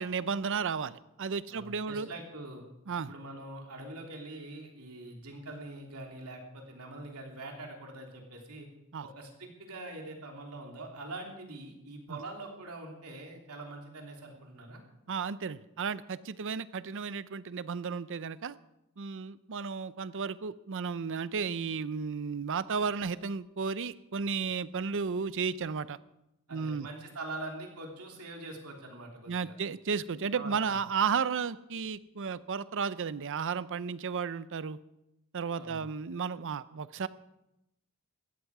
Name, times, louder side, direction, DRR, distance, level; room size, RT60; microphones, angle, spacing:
voice 1, 0.0-2.1 2.9-3.1 8.9-9.0 12.1-12.2 15.1-18.6 19.0-26.0 26.5-26.9 29.3-34.8 35.3-37.1, right 5 dB, 60° right, 16 dB, 0.6 m, -33 dB
voice 2, 1.5-2.6 3.0-8.7 9.0-14.8 26.5-29.5 30.3-30.8 35.6-35.9, right 2 dB, 90° right, 1 dB, 3.2 m, -44 dB
16.5 x 13.5 x 4.8 m, 0.88 s
head